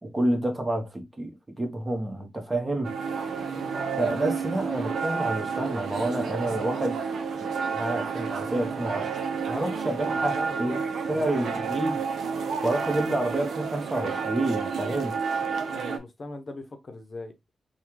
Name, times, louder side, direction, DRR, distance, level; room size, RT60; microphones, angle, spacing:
voice 1, 0.0-2.9 4.0-7.0 7.4-10.8 11.1-12.0 12.6-15.2, right 1 dB, 25° right, 1.1 m, -29 dB
sound 1, 2.8-16.0, right 5 dB, 80° right, 0.5 m, -30 dB
voice 2, 3.5-3.8 9.8-11.8 15.4-17.6, left 2 dB, 50° left, 0.7 m, -41 dB
3.4 x 2.3 x 3.0 m
cardioid pair, 60°, 0 cm